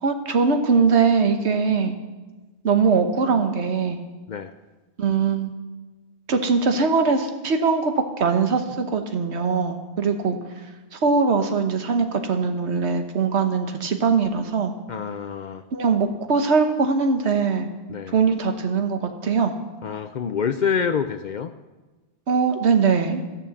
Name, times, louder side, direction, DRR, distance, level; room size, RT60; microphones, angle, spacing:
voice 1, 0.0-2.0 2.6-4.0 5.0-5.5 6.3-10.4 10.9-14.7 15.7-17.7 18.1-19.5 22.3-23.2, right 5 dB, 80° right, 6 dB, 1.3 m, -21 dB
voice 2, 14.9-15.6 17.9-18.1 19.8-21.5, left 6 dB, 55° left, 10 dB, 0.6 m, -26 dB
14.0 x 7.0 x 7.0 m, 1.2 s
omnidirectional pair, 1.1 m